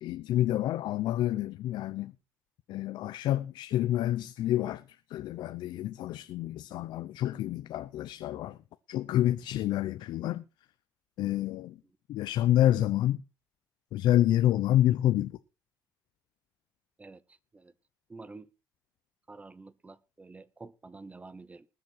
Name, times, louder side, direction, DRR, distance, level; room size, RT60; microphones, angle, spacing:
voice 1, 0.0-2.1 2.7-4.8 5.1-8.6 8.9-10.4 11.2-11.7 12.1-13.2 13.9-15.3, left 13 dB, 85° left, 0.7 m, -28 dB
voice 2, 18.1-18.5 19.3-21.7, right 3 dB, 20° right, 1.0 m, -48 dB
20.0 x 7.6 x 4.6 m
cardioid pair, 125°, 8 cm